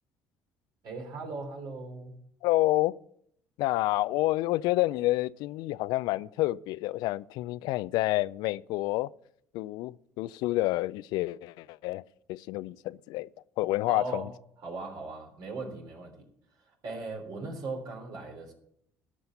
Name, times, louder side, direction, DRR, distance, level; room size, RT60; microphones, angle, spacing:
voice 1, 0.8-2.1 13.9-14.3 14.6-16.3 16.6-18.5, right 3 dB, 65° right, 3.5 m, -38 dB
voice 2, 2.4-3.0 3.6-9.1 9.5-12.0 12.3-13.3 13.6-14.2, left 18 dB, 70° left, 0.3 m, -28 dB
13.5 x 5.6 x 7.8 m
supercardioid pair, 75°, 7 cm